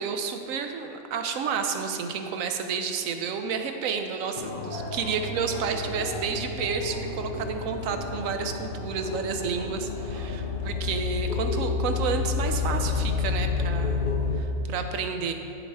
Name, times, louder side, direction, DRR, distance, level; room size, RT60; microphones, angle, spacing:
voice 1, 0.0-14.0 14.4-15.3, right 6 dB, 75° right, 6 dB, 1.0 m, -30 dB
sound 1, 4.4-14.4, left 4 dB, 55° left, 0.6 m, -30 dB
9.1 x 6.3 x 3.4 m, 2.7 s
omnidirectional pair, 1.4 m